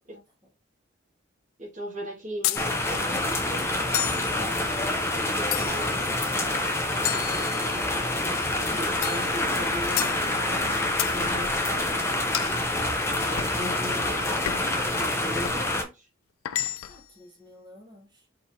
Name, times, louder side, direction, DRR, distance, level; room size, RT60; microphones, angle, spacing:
voice 1, 1.6-3.8 5.3-6.0 7.0-7.3 7.6-7.9 8.5-11.9 13.3-14.4 15.0-16.1, equal, 40° right, 1.7 m, -38 dB
sound 1, 2.4-2.7 3.9-4.3 5.5-6.0 7.0-7.9 9.0-9.3 10.0-10.2 11.0-11.2 12.3-12.6 13.4-13.6 14.4-14.8 15.4-15.7 16.4-17.0, left 14 dB, 85° left, 0.3 m, -31 dB
sound 2, 2.5-15.8, left 2 dB, 15° left, 0.7 m, -27 dB
voice 2, 4.3-4.9 8.7-8.9 16.9-18.2, left 1 dB, 20° right, 1.5 m, -46 dB
4.5 x 3.5 x 2.7 m
head